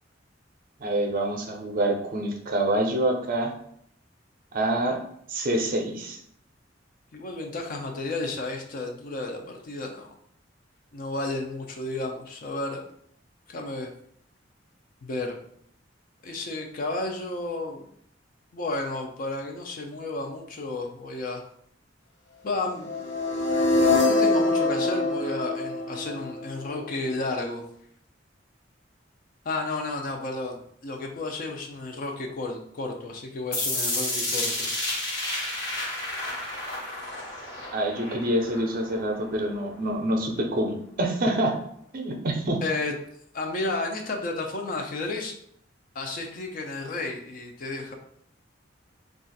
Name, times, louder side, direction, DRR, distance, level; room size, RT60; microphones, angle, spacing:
voice 1, 0.8-3.5 4.5-5.0 5.3-6.2 37.7-41.5 41.9-42.6, right 1 dB, 50° right, 2 dB, 0.5 m, -26 dB
voice 2, 7.1-10.1 10.9-12.8 13.5-13.9 15.0-15.4 16.2-17.8 18.5-21.5 22.4-22.9 23.9-27.6 29.4-34.7 42.6-42.9 43.3-45.3 45.9-48.0, left 2 dB, 50° left, 2 dB, 0.5 m, -32 dB
sound 1, 22.8-26.9, left 2 dB, 85° left, 0.7 m, -24 dB
sound 2, 33.5-39.5, left 1 dB, 65° left, 1.2 m, -31 dB
2.4 x 2.4 x 3.9 m, 0.67 s
head